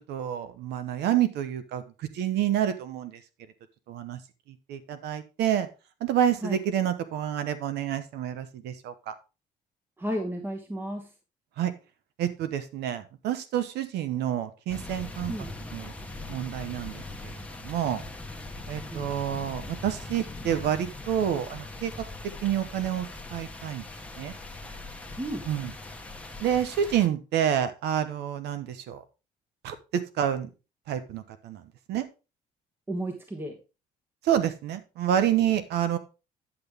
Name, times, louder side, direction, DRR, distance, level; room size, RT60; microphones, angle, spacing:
voice 1, 0.1-1.8 2.1-3.2 3.9-4.2 4.7-5.7 6.0-9.1 11.6-11.7 12.2-15.3 15.7-15.9 16.3-17.0 17.6-18.0 18.7-21.9 22.4-23.1 23.3-23.8 24.2-24.3 25.5-25.7 26.4-29.0 29.6-30.5 30.9-31.6 31.9-32.0 34.2-36.0, right 10 dB, 75° right, 12 dB, 1.0 m, -28 dB
voice 2, 10.0-11.1 15.3-15.5 18.9-19.1 25.2-25.5 32.9-33.6, right 1 dB, 10° right, 3 dB, 1.2 m, -33 dB
sound 1, 14.7-27.1, left 2 dB, 5° left, 1.2 m, -41 dB
9.8 x 6.1 x 3.5 m, 0.30 s
cardioid pair, 110°, 17 cm